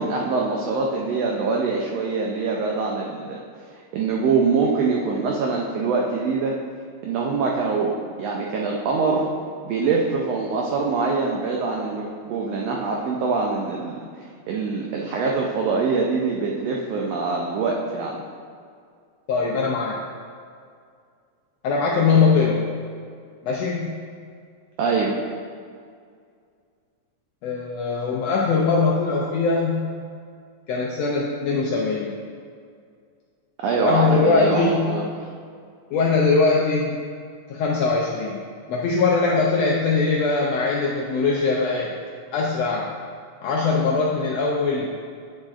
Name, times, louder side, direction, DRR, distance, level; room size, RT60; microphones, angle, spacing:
voice 1, 0.0-3.4 3.9-6.5 7.0-9.3 9.6-14.0 14.5-18.2 24.8-25.2 33.6-35.0, right 4 dB, 85° right, -1 dB, 1.4 m, -24 dB
voice 2, 19.3-20.0 21.6-22.7 23.4-24.0 27.4-29.9 30.7-32.2 33.8-35.0 35.9-36.9 37.5-38.4 38.7-41.9 42.3-42.9 43.4-44.9, left 4 dB, 85° left, -2 dB, 1.4 m, -21 dB
9.6 x 6.3 x 2.4 m, 2.2 s
omnidirectional pair, 3.6 m